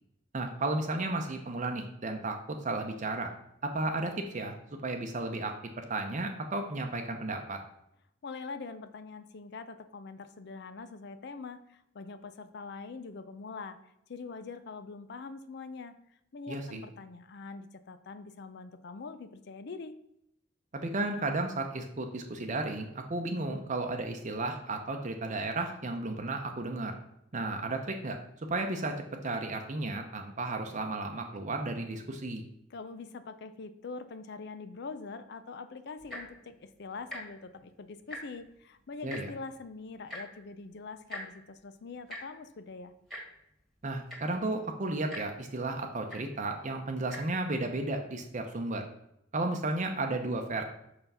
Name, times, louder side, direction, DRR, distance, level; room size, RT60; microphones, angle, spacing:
voice 1, 0.3-3.3 3.6-4.5 4.8-7.6 16.5-16.8 20.7-26.9 27.3-28.2 28.5-29.0 29.2-32.4 39.0-39.3 43.8-48.8 49.3-50.6, right 2 dB, 40° right, 4 dB, 0.7 m, -33 dB
voice 2, 8.2-13.8 14.1-20.0 32.7-42.9, left 4 dB, 60° left, 11 dB, 0.5 m, -44 dB
Tick-tock, 36.0-36.4 37.0-37.2 37.5-37.7 37.9-38.5 39.1-39.2 40.1-40.2 41.1-41.2 42.1-42.2 43.1-43.2 43.8-43.9 44.1-44.4 45.1-45.2 46.1-46.2 47.0-47.2 47.9-48.0, left 1 dB, ahead, 1.8 m, -41 dB
5.9 x 5.7 x 5.5 m, 0.80 s
head